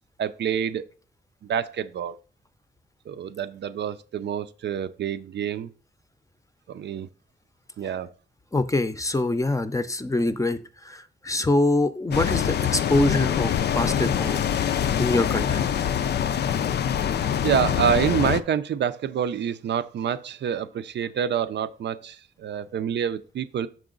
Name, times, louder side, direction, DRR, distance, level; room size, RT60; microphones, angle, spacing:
voice 1, 0.2-0.8 1.5-2.2 3.1-5.7 6.7-7.1 7.8-8.1 17.4-23.7, right 8 dB, 80° right, 0.5 m, -27 dB
voice 2, 8.5-10.6 10.8-14.4 15.0-15.6, left 2 dB, 20° left, 0.5 m, -24 dB
sound 1, 12.1-18.4, left 9 dB, 70° left, 0.4 m, -24 dB
6.2 x 4.8 x 3.8 m
cardioid pair, 90°, 18 cm